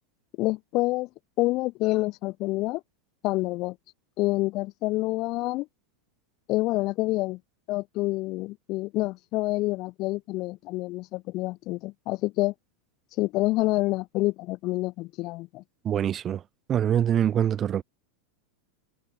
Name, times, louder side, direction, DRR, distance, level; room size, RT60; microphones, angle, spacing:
voice 1, 0.4-1.1 1.4-2.8 3.2-3.8 4.2-5.7 6.5-7.4 7.7-12.5 13.2-15.6, left 20 dB, 45° left, 2.4 m, -27 dB
voice 2, 15.8-16.4 16.7-17.8, right 10 dB, 30° right, 2.9 m, -24 dB
hypercardioid pair, 110°, 0 cm